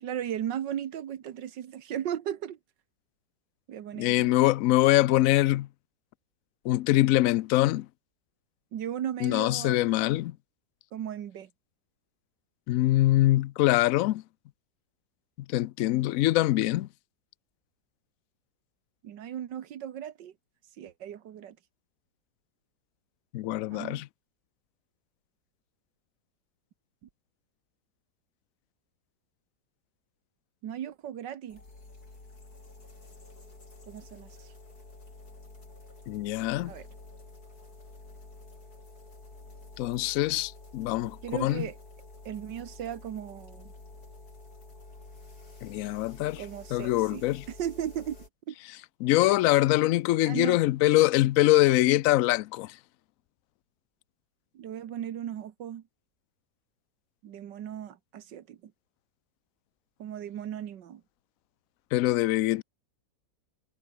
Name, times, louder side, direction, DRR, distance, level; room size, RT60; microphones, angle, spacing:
voice 1, 0.0-2.6 3.7-4.3 8.7-9.8 10.9-11.5 19.0-20.3 20.8-21.6 23.7-24.0 27.0-27.1 30.6-31.6 33.9-34.5 36.7-36.9 41.2-41.8 42.3-43.7 46.4-48.2 48.5-48.6 50.2-50.6 54.5-55.8 57.2-58.7 60.0-61.0, right 10 dB, 85° right, 1.8 m, -36 dB
voice 2, 4.0-5.7 6.6-7.9 9.2-10.4 12.7-14.2 15.5-16.9 23.3-24.1 36.1-36.7 39.8-41.7 45.6-46.4 46.7-47.4 49.0-52.8 61.9-62.6, left 16 dB, 75° left, 0.7 m, -24 dB
sound 1, 31.5-48.3, left 2 dB, 60° left, 5.6 m, -49 dB
omnidirectional pair, 1.9 m